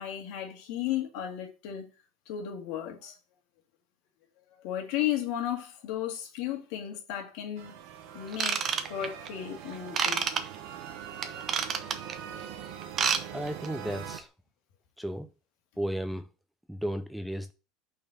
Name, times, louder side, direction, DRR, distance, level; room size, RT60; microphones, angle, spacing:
voice 1, 0.0-1.8 2.3-3.1 4.6-7.7 8.1-10.3 11.3-11.8, left 11 dB, 65° left, 2.1 m, -34 dB
sound 1, 7.6-14.2, right 9 dB, 65° right, 1.1 m, -43 dB
Ratchet pawl / Tools, 8.3-9.3 9.9-10.4 11.2-12.1 12.8-13.2 13.5-13.7 14.2-14.3, right 7 dB, 30° right, 0.8 m, -28 dB
voice 2, 13.3-14.3 15.0-15.3 15.8-16.2 16.7-17.5, equal, ahead, 0.5 m, -34 dB
5.6 x 4.3 x 6.3 m
supercardioid pair, 150°, 0 cm